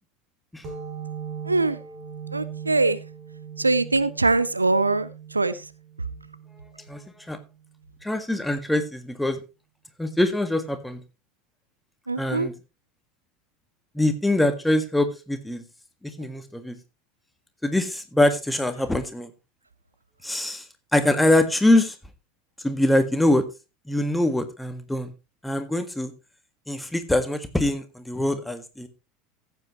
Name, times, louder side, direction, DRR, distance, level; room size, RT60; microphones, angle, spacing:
sound 1, 0.6-7.9, right 7 dB, 40° right, 4.6 m, -40 dB
voice 1, 1.4-1.8 2.3-3.0 3.6-5.7 12.1-12.5, right 3 dB, 85° right, 17 dB, 0.5 m, -22 dB
voice 2, 6.8-7.4 8.0-9.4 10.0-11.0 12.2-12.5 13.9-15.6 16.0-16.8 17.6-19.3 20.2-20.7 20.9-22.0 22.6-23.4 23.9-25.1 25.4-26.1 26.7-28.9, left 1 dB, 5° left, 9 dB, 1.6 m, -23 dB
15.0 x 8.2 x 3.0 m, 0.28 s
figure-of-eight pair, 75°, 0 cm